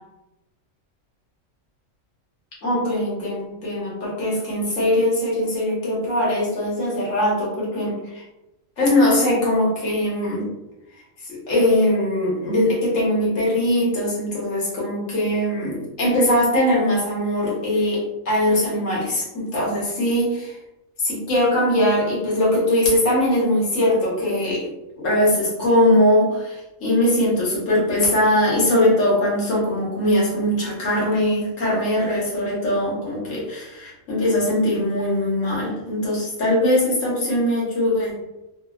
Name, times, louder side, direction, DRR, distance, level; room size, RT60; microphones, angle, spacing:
voice 1, 2.6-8.2 8.8-10.5 11.2-20.6 21.0-24.7 25.0-38.2, left 1 dB, 70° left, -6 dB, 1.4 m, -21 dB
3.3 x 2.2 x 2.3 m, 0.98 s
omnidirectional pair, 1.4 m